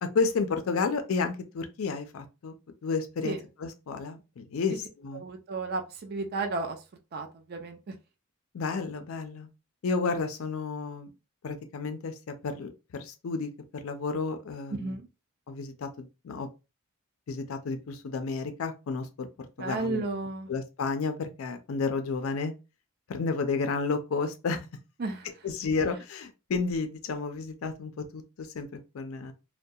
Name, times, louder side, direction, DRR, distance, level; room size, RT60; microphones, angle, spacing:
voice 1, 0.0-2.5 2.8-5.2 8.5-9.5 9.8-11.1 11.4-15.0 15.5-16.5 17.3-19.3 19.6-20.0 20.5-22.5 23.1-24.7 25.4-28.7 28.9-29.3, left 4 dB, 90° left, 0.4 m, -31 dB
voice 2, 5.1-6.8 7.1-7.9 14.8-15.1 19.6-20.5 25.0-25.3, right 3 dB, 50° right, 0.4 m, -33 dB
2.2 x 2.1 x 2.6 m
head